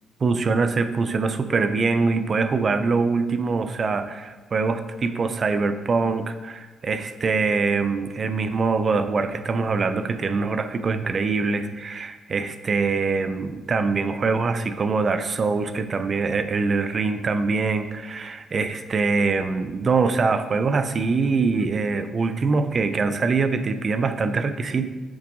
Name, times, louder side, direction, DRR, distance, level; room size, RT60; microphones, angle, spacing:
voice 1, 0.2-24.9, right 4 dB, 45° right, 10 dB, 0.5 m, -23 dB
7.4 x 4.8 x 3.7 m, 1.3 s
cardioid pair, 90°, 0 cm